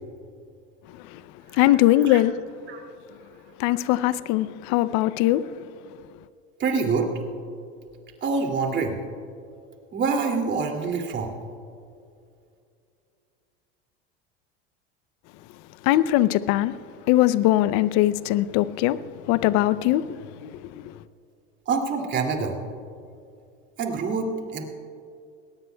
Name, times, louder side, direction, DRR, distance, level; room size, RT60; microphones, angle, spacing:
voice 1, 1.6-2.3 3.6-5.4 15.9-16.7 17.1-19.0 19.3-20.0 20.4-20.5, left 15 dB, 60° left, 0.6 m, -20 dB
voice 2, 6.6-7.1 8.2-9.0 9.9-11.3 21.7-22.6 23.8-24.6, right 4 dB, 35° right, 2.6 m, -26 dB
21.0 x 18.5 x 2.3 m
supercardioid pair, 100°, 31 cm